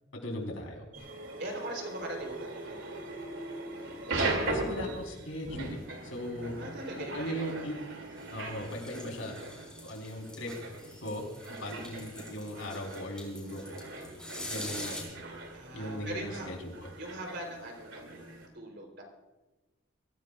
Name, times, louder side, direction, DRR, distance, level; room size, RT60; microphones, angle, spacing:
voice 1, 0.1-0.8 4.2-6.5 7.0-7.8 8.3-9.4 9.8-10.5 11.0-11.2 11.6-13.8 14.5-15.2 15.7-16.7, equal, 75° left, 1 dB, 4.2 m, -38 dB
sound 1, 0.9-18.5, right 2 dB, 70° right, 2.8 m, -39 dB
voice 2, 1.4-3.0 6.6-7.7 15.5-16.5 17.0-19.0, right 1 dB, 55° right, 2 dB, 3.8 m, -41 dB
sound 2, 8.2-15.0, left 2 dB, 5° left, 3.8 m, -45 dB
23.0 x 15.5 x 2.5 m, 1.1 s
head